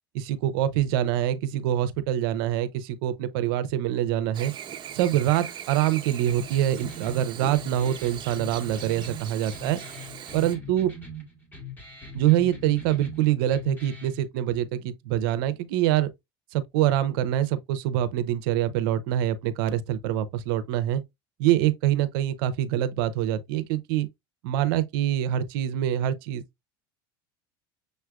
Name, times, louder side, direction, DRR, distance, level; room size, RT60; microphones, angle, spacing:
voice 1, 0.1-4.5 4.9-9.8 10.3-10.9 12.1-16.1 16.5-21.0 21.4-24.1 24.4-26.4, right 12 dB, 80° right, 0.7 m, -25 dB
Chirp tweet / Buzz, 4.3-10.6, right 9 dB, 40° right, 1.1 m, -40 dB
sound 1, 6.3-14.2, left 1 dB, 15° left, 1.8 m, -41 dB
6.5 x 3.2 x 2.4 m
supercardioid pair, 105°, 12 cm